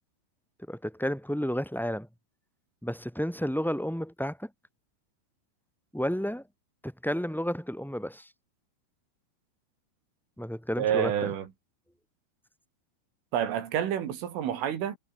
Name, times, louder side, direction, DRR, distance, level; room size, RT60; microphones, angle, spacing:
voice 1, 0.7-2.1 2.8-4.5 5.9-6.4 6.8-8.3 10.4-11.3, equal, ahead, 4.2 m, -31 dB
voice 2, 10.8-11.5 13.3-15.0, right 10 dB, 85° right, 5.5 m, -28 dB
omnidirectional pair, 5.5 m